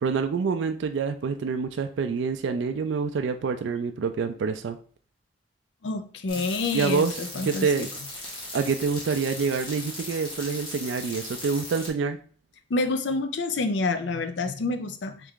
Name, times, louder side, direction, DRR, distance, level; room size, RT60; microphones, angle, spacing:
voice 1, 0.0-4.8 6.7-7.1 7.5-7.9 8.5-12.2, right 5 dB, 85° right, 7 dB, 0.3 m, -27 dB
voice 2, 5.8-7.7 12.7-15.3, left 3 dB, 75° left, 9 dB, 0.5 m, -28 dB
sound 1, 6.3-11.9, left 1 dB, 30° left, 1.1 m, -38 dB
3.5 x 3.3 x 3.6 m, 0.43 s
head